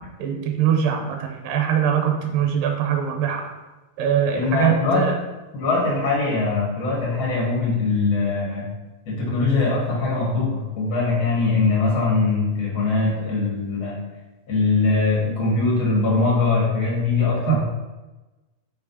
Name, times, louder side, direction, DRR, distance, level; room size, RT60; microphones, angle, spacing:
voice 1, 0.2-3.4 4.0-5.1 17.5-17.6, right 8 dB, 75° right, 3 dB, 2.3 m, -22 dB
voice 2, 4.3-5.1 5.5-8.6 9.0-14.0 14.5-17.6, left 3 dB, 40° left, -4 dB, 1.3 m, -22 dB
5.6 x 4.8 x 4.1 m, 1.1 s
omnidirectional pair, 4.1 m